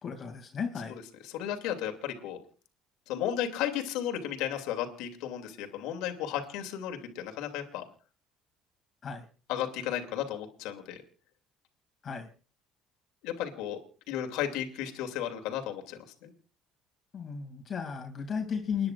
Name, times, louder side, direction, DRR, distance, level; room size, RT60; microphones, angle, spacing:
voice 1, 0.0-1.0 9.0-9.2 12.0-12.3 17.1-18.9, left 6 dB, 45° left, 3 dB, 2.5 m, -34 dB
voice 2, 1.2-2.4 3.1-7.8 9.5-11.0 13.2-13.8 14.1-16.3, left 10 dB, 75° left, 4 dB, 2.6 m, -34 dB
29.5 x 10.5 x 2.5 m, 0.38 s
supercardioid pair, 80°, 0 cm